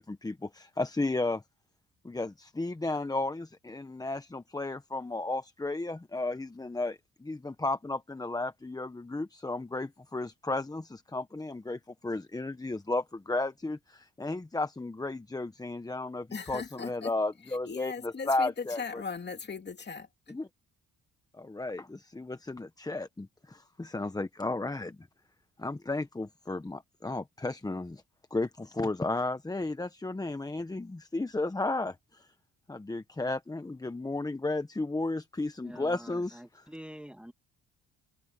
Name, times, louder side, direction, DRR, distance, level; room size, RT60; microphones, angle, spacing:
voice 1, 0.0-1.4 2.0-19.0 20.3-20.5 21.3-25.0 25.6-28.0 28.3-32.3 32.7-36.4, left 2 dB, 10° left, 1.0 m, -34 dB
voice 2, 16.3-17.1 17.5-20.1, left 5 dB, 35° left, 2.8 m, -39 dB
voice 3, 35.6-37.3, equal, 5° right, 2.0 m, -46 dB
cardioid pair, 90°, 30 cm